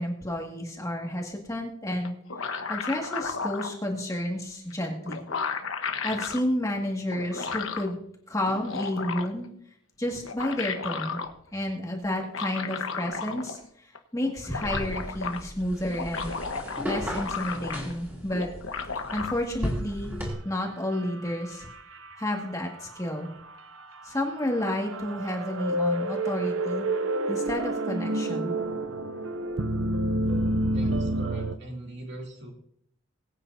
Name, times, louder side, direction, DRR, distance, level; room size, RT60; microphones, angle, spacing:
voice 1, 0.0-2.1 2.7-5.2 6.0-8.0 8.3-9.5 10.0-11.2 11.5-16.4 16.9-18.5 19.1-20.1 20.4-21.7 22.2-23.3 24.0-26.9 27.3-28.6, left 1 dB, 15° left, 0 dB, 2.0 m, -31 dB
sound 1, 2.0-3.7 4.7-4.8 5.1-6.4 7.1-7.9 8.4-9.5 10.1-11.3 12.2-13.7 13.9-14.0 14.2-15.4 15.8-18.0 18.3-19.3, left 5 dB, 80° left, 1.2 m, -33 dB
sound 2, 14.6-20.3, equal, 10° right, 3.4 m, -35 dB
sound 3, 20.9-22.4 22.8-22.9 24.1-31.6, right 1 dB, 80° right, 0.7 m, -28 dB
voice 2, 30.7-32.5, right 1 dB, 55° right, 0 dB, 2.7 m, -41 dB
21.5 x 9.1 x 2.7 m, 0.69 s
head